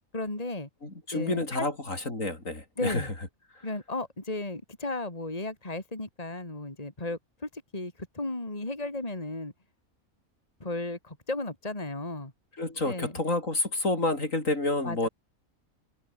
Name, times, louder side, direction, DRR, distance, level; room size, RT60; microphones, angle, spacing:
voice 1, 0.1-0.7 1.1-1.7 2.8-3.1 3.6-9.5 10.6-12.3 12.9-13.2 14.8-15.1, left 2 dB, 25° left, 3.5 m, -34 dB
voice 2, 0.8-3.1 12.6-15.1, left 2 dB, 65° left, 5.6 m, -29 dB
omnidirectional pair, 1.5 m